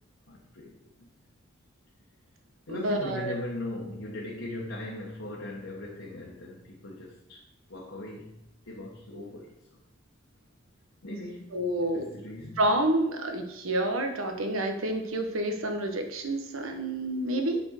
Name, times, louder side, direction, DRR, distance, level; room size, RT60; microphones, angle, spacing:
voice 1, 0.3-0.7 1.0-1.1 2.7-7.4 7.7-8.4 8.6-9.5 11.0-11.6 11.9-12.6, left 1 dB, 70° left, -4 dB, 1.4 m, -39 dB
voice 2, 2.7-3.3 11.5-12.1 12.6-17.6, right 1 dB, 85° right, 5 dB, 1.2 m, -28 dB
8.3 x 4.5 x 6.5 m, 0.86 s
head